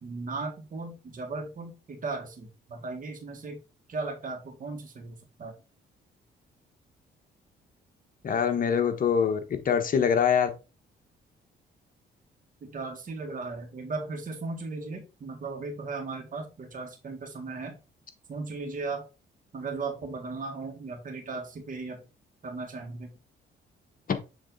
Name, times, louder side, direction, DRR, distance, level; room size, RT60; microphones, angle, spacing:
voice 1, 0.0-3.6 3.9-5.5 12.6-17.7 18.3-19.0 19.5-22.0 22.4-23.1, right 3 dB, 45° right, 1 dB, 1.9 m, -36 dB
voice 2, 8.2-9.4 9.6-10.5 24.1-24.2, left 7 dB, 50° left, 7 dB, 1.2 m, -24 dB
7.1 x 3.3 x 4.0 m, 0.30 s
cardioid pair, 85°, 19 cm